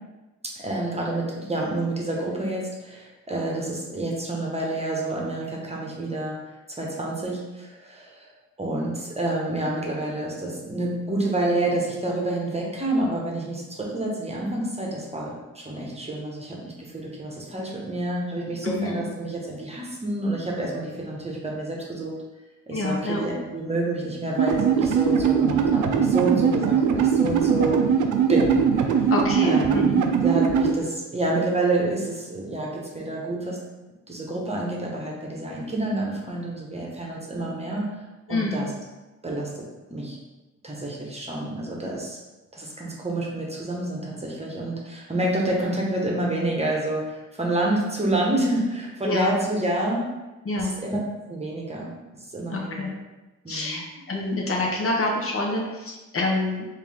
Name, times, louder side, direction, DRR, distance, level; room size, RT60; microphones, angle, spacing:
voice 1, 0.5-6.4 6.8-8.3 8.6-22.1 22.7-27.8 28.3-28.6 29.4-33.6 34.1-37.9 38.3-38.7 39.2-39.5 39.9-40.2 40.6-42.2 42.5-50.1 50.6-51.0 51.3-51.9 52.3-52.9 53.4-53.8, right 2 dB, 20° right, -2 dB, 1.1 m, -28 dB
voice 2, 18.6-19.0 22.7-23.2 29.1-30.1 38.3-38.7 49.0-49.4 50.4-50.8 52.5-52.9 53.5-53.8 54.1-56.7, left 2 dB, 45° left, -1 dB, 0.8 m, -27 dB
sound 1, 24.4-30.7, right 7 dB, 70° right, 0.5 m, -21 dB
3.6 x 2.7 x 3.4 m, 1.1 s
supercardioid pair, 60°, 32 cm